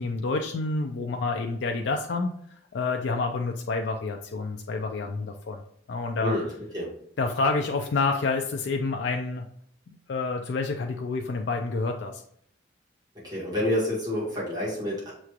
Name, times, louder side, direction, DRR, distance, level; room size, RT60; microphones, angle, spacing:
voice 1, 0.0-5.6 5.9-6.4 7.2-9.5 9.9-12.2, left 3 dB, 65° left, 3 dB, 0.4 m, -28 dB
voice 2, 6.2-6.9 13.2-15.1, left 1 dB, 20° right, -6 dB, 1.5 m, -28 dB
6.6 x 3.1 x 2.4 m, 0.66 s
head